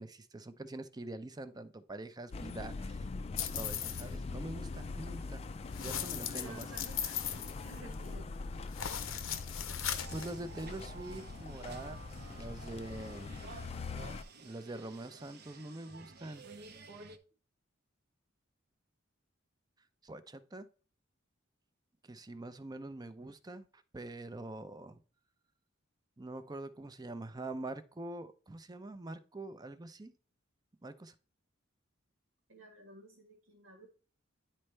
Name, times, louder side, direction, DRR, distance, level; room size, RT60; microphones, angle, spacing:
voice 1, 0.0-3.1 3.3-5.4 5.7-6.7 10.1-12.0 12.3-13.3 14.4-16.4 20.0-20.7 22.0-25.0 26.2-30.1 30.8-31.1, right 2 dB, 20° right, 11 dB, 0.5 m, -44 dB
sound 1, 2.3-14.2, left 3 dB, 30° left, 0.3 m, -43 dB
sound 2, 3.4-4.1 5.7-8.1 8.7-10.3, left 9 dB, 90° left, 0.7 m, -38 dB
voice 2, 6.3-8.3 32.5-33.9, right 2 dB, 85° right, 2 dB, 1.6 m, -53 dB
sound 3, 9.8-17.2, right 4 dB, 55° right, 0.7 m, -52 dB
10.0 x 4.4 x 3.2 m, 0.39 s
head